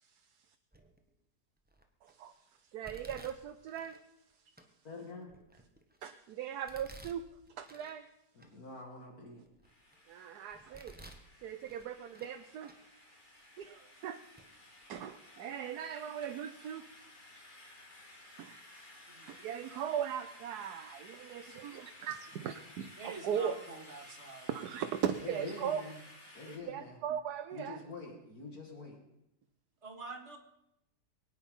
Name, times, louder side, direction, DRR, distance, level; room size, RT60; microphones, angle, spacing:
Domestic sounds home sounds, 0.7-1.1 1.7-2.1 2.8-4.0 4.6-4.7 5.3-6.0 6.7-8.0 8.4-8.5 9.1-10.0 10.5-11.3 11.6-12.4 12.6-12.8 13.6-13.7 14.4-14.5 14.8-15.0, right 1 dB, 5° right, 1.2 m, -54 dB
voice 1, 2.0-4.0 6.0-7.2 7.6-8.1 10.1-11.0 11.4-12.7 13.6-14.2 14.9-16.9 18.4-18.6 19.2-23.6 24.5-25.8 26.5-27.8, right 9 dB, 75° right, 8 dB, 1.3 m, -39 dB
voice 2, 4.8-5.3 8.3-9.4 25.2-26.0 26.3-27.0 27.5-29.0, left 3 dB, 65° left, 1 dB, 2.7 m, -46 dB
sound 1, 9.6-26.6, left 1 dB, 30° left, 2.5 m, -56 dB
voice 3, 23.0-24.5 29.8-30.4, right 3 dB, 45° right, 4 dB, 2.3 m, -46 dB
23.0 x 9.4 x 5.5 m, 0.85 s
omnidirectional pair, 1.7 m